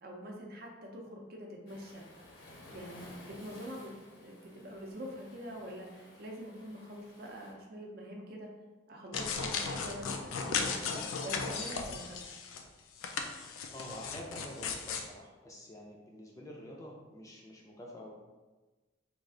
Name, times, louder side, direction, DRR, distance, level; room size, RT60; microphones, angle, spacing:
voice 1, 0.0-2.0 2.7-3.9 4.2-8.5 8.9-12.4, equal, 50° right, 0 dB, 0.6 m, -45 dB
Waves surf, 1.7-7.5, left 1 dB, 70° left, 0.8 m, -55 dB
sound 1, 9.1-12.6 13.0-15.1, left 5 dB, 90° left, 0.4 m, -36 dB
voice 2, 13.7-18.1, equal, 15° left, -2 dB, 0.4 m, -47 dB
3.2 x 2.4 x 3.7 m, 1.2 s
head